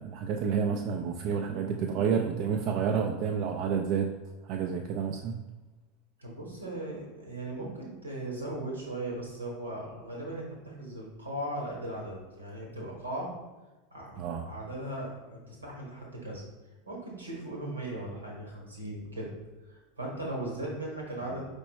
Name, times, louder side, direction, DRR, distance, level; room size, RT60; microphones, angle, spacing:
voice 1, 0.0-4.1 4.4-5.4 14.2-14.5, right 6 dB, 50° right, 3 dB, 0.3 m, -29 dB
voice 2, 6.2-13.3 13.9-16.4 16.9-19.3 19.6-21.5, right 1 dB, 85° right, -2 dB, 1.3 m, -38 dB
5.1 x 3.2 x 3.1 m, 1.2 s
figure-of-eight pair, 80°, 0 cm